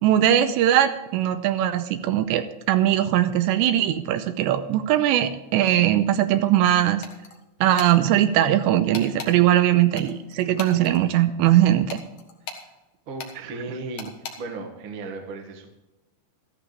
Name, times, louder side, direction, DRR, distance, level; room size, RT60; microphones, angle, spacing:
voice 1, 0.0-7.1 7.6-12.0, right 12 dB, 85° right, 10 dB, 2.8 m, -20 dB
sound 1, 7.0-7.4 7.8-7.9 8.9-9.3 10.0-11.0 11.9-12.7 13.2-13.3 14.0-14.4, left 5 dB, 60° left, 2.2 m, -37 dB
voice 2, 13.1-14.1 14.4-15.7, right 3 dB, 55° right, 2 dB, 1.5 m, -35 dB
14.0 x 14.0 x 3.3 m, 1.0 s
omnidirectional pair, 5.3 m